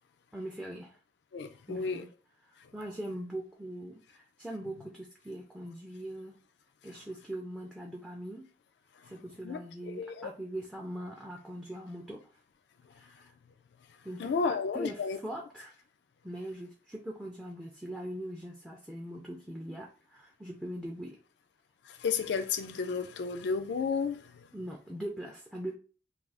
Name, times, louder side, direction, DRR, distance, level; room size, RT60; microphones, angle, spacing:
voice 1, 0.3-1.0 1.7-2.1 2.5-6.4 6.8-8.5 9.0-12.2 12.9-13.3 14.0-15.8 16.2-21.2 24.5-25.8, right 1 dB, 5° right, 0.3 m, -41 dB
voice 2, 1.3-2.0 9.4-10.3 14.2-15.2 21.9-24.2, left 5 dB, 70° left, 0.4 m, -32 dB
2.4 x 2.3 x 3.4 m
head